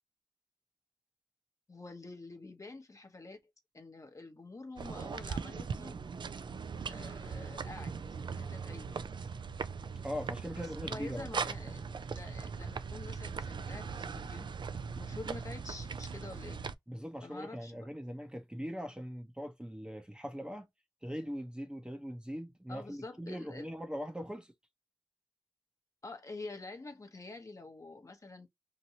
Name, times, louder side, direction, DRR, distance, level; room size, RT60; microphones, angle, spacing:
voice 1, 1.7-3.4 3.7-6.0 6.8-8.0 8.3-8.9 10.6-14.5 14.9-16.6 17.2-17.9 22.7-23.7 26.0-28.5, left 3 dB, 40° left, 0.8 m, -47 dB
sound 1, 4.8-16.7, right 5 dB, 75° right, 0.3 m, -40 dB
voice 2, 10.0-11.3 16.9-20.7 21.0-24.5, equal, 10° right, 0.7 m, -41 dB
2.9 x 2.6 x 2.7 m
wide cardioid pair, 90°, 8 cm